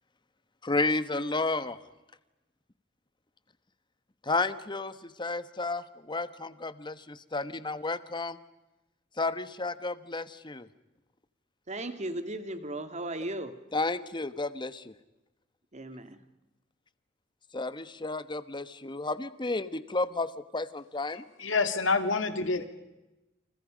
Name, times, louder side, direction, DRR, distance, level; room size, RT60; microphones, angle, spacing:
voice 1, 0.6-1.8 4.2-8.4 9.2-10.7 13.7-14.9 17.5-21.2, left 3 dB, 25° left, 13 dB, 1.2 m, -32 dB
voice 2, 11.7-13.6 15.7-16.3, right 1 dB, 35° right, 9 dB, 2.1 m, -36 dB
voice 3, 21.1-22.6, left 3 dB, 75° left, 8 dB, 2.6 m, -28 dB
29.5 x 28.5 x 5.2 m, 1.0 s
head